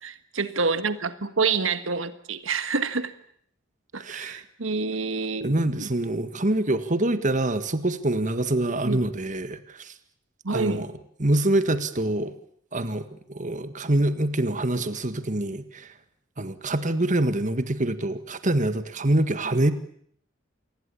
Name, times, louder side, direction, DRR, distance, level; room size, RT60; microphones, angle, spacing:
voice 1, 0.0-3.1 3.9-5.5 5.8-5.9 8.8-9.0 10.4-10.8, right 4 dB, 80° right, 12 dB, 1.5 m, -27 dB
voice 2, 4.0-4.4 5.4-9.9 10.5-10.9 11.2-12.3 12.7-15.9 16.4-19.7, right 1 dB, 40° right, 11 dB, 1.8 m, -25 dB
28.0 x 20.5 x 8.6 m, 0.65 s
head